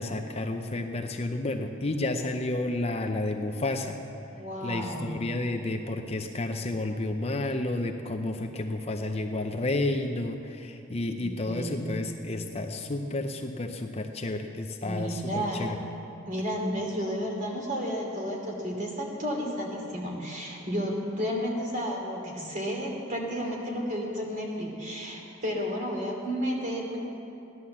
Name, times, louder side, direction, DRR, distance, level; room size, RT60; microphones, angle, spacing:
voice 1, 0.0-4.0 4.6-15.2 15.5-15.8, left 2 dB, 30° left, 4 dB, 0.6 m, -31 dB
voice 2, 4.3-5.2 11.2-11.9 14.8-15.7 16.3-27.0, equal, 35° right, -1 dB, 2.7 m, -32 dB
16.0 x 11.0 x 7.2 m, 2.8 s
head